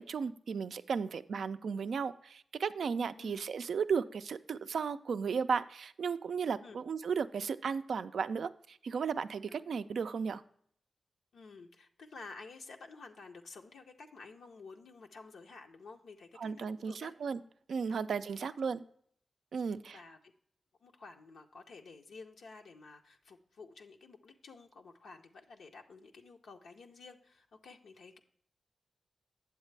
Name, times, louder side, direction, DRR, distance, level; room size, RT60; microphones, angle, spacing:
voice 1, 0.0-10.4 16.4-17.4 17.7-18.8 19.5-20.0, right 6 dB, 80° right, 12 dB, 0.3 m, -35 dB
voice 2, 11.3-17.1 17.9-18.0 18.4-18.5 19.9-20.3 20.8-28.2, left 4 dB, 85° left, 2 dB, 0.5 m, -52 dB
8.1 x 7.3 x 3.2 m, 0.64 s
cardioid pair, 45°, 0 cm